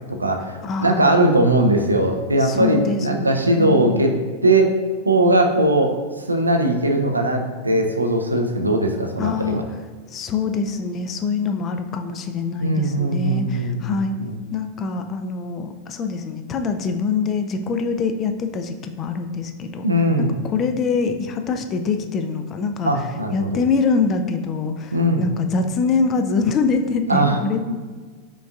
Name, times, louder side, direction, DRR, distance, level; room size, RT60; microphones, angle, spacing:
voice 1, 0.1-4.1 4.4-4.7 5.1-5.9 6.3-9.6 12.6-14.4 19.8-20.3 22.8-23.5 24.9-25.3 27.1-27.4 27.7-27.8, right 1 dB, 80° right, 3 dB, 0.4 m, -19 dB
voice 2, 0.6-1.2 2.4-4.1 9.2-9.6 10.1-14.1 14.5-19.9 20.2-23.1 23.3-27.7, left 4 dB, 30° left, 7 dB, 0.3 m, -24 dB
5.2 x 3.5 x 2.3 m, 1.4 s
figure-of-eight pair, 90°, 0 cm